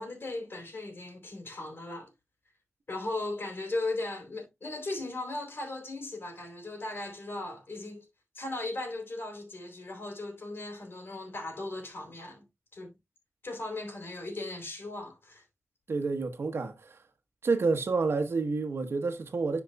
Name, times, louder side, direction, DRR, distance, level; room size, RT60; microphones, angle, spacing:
voice 1, 0.0-2.1 2.9-8.1 8.3-12.4 12.7-12.9 13.4-15.4, left 2 dB, 60° left, 3.6 m, -37 dB
voice 2, 15.9-17.0 17.4-19.6, right 4 dB, 75° right, 1.1 m, -29 dB
10.5 x 5.2 x 2.3 m
cardioid pair, 55°, 4 cm